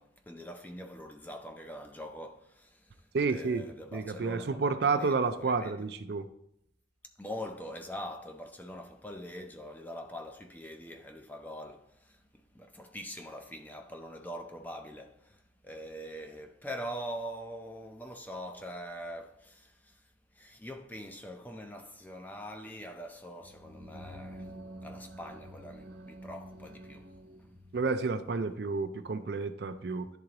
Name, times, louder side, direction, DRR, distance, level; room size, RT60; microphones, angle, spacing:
voice 1, 0.0-5.8 7.2-20.0 20.3-24.5 24.8-27.1, equal, 10° left, 0.5 m, -43 dB
voice 2, 3.1-3.7 3.9-6.3 27.7-30.1, right 4 dB, 60° right, 0.4 m, -30 dB
sound 1, 23.4-28.0, right 1 dB, 90° right, 1.0 m, -48 dB
10.5 x 3.8 x 3.0 m
head